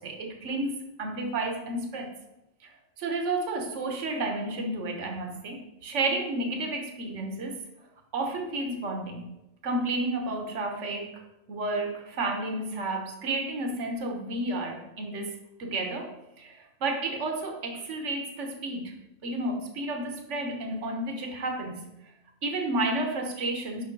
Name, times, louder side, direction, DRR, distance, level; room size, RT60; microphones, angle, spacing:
voice 1, 0.0-2.1 2.6-2.7 3.0-7.6 8.1-9.3 9.6-11.2 11.5-18.9 19.2-21.9 22.4-23.8, right 2 dB, 70° right, 3 dB, 1.4 m, -31 dB
6.8 x 5.6 x 4.6 m, 0.90 s
omnidirectional pair, 1.3 m